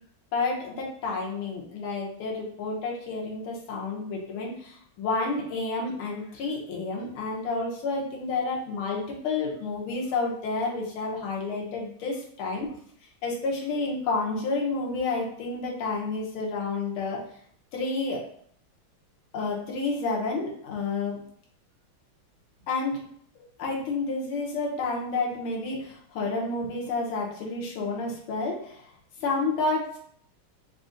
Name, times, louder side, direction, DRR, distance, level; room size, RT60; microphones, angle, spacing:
voice 1, 0.3-12.7 13.2-17.2 17.7-18.2 19.3-21.2 22.7-23.0 23.6-28.9 29.2-30.0, left 3 dB, 80° left, -2 dB, 1.7 m, -30 dB
3.9 x 2.5 x 3.8 m, 0.63 s
omnidirectional pair, 2.3 m